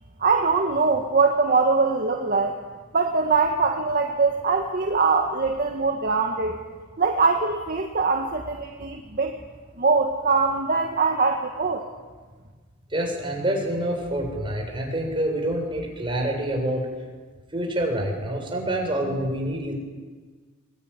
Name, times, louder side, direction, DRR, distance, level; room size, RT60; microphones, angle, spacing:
voice 1, 0.2-2.6 2.9-6.6 7.0-9.4 9.8-11.8, right 4 dB, 45° right, 3 dB, 1.8 m, -22 dB
voice 2, 12.9-16.8 17.5-19.7, right 1 dB, 25° right, 1 dB, 6.9 m, -27 dB
23.0 x 22.5 x 10.0 m, 1.4 s
head